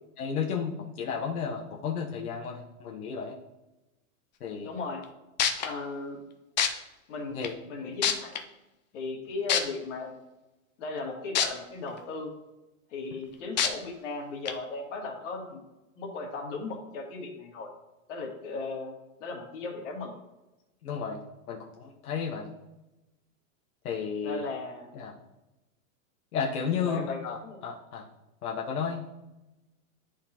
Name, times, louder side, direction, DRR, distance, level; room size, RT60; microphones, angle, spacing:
voice 1, 0.2-3.4 4.4-4.7 7.3-7.5 7.8-7.9 20.8-21.2 21.5-22.5 23.8-24.4 24.9-25.1 26.3-28.0 28.4-29.0, left 6 dB, 85° left, -1 dB, 1.1 m, -33 dB
voice 2, 4.6-5.0 5.6-6.2 7.1-7.4 7.7-8.4 8.9-10.1 10.8-12.3 12.9-15.6 16.0-17.7 18.1-18.9 19.2-20.1 24.2-24.9 26.7-27.6, left 3 dB, 55° left, 0 dB, 1.8 m, -36 dB
sound 1, 5.0-5.1 5.4-5.7 6.6-6.7 7.4-7.5 8.0-8.4 9.5-9.6 11.4-11.5 12.0-12.1 13.6-13.7 14.5-14.6, left 8 dB, 35° left, 0.4 m, -24 dB
11.0 x 3.8 x 2.9 m, 1.0 s
supercardioid pair, 165°, 43 cm